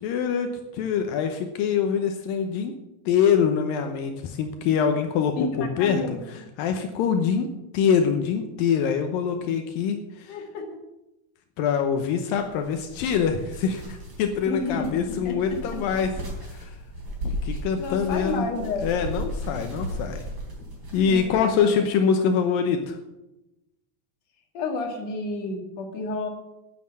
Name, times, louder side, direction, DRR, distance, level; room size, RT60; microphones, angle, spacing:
voice 1, 0.0-2.7 3.1-6.0 6.6-7.5 7.7-10.3 11.6-16.1 16.5-16.7 17.2-18.5 18.8-20.2 20.9-23.0, left 7 dB, 80° left, 5 dB, 2.6 m, -24 dB
voice 2, 5.4-6.2 10.3-10.8 14.5-15.8 17.5-18.9 21.1-21.8 24.5-26.3, left 3 dB, 55° left, 2 dB, 2.9 m, -31 dB
sound 1, 12.4-21.6, equal, 35° right, 4.1 m, -36 dB
10.0 x 9.5 x 7.4 m, 0.94 s
omnidirectional pair, 4.1 m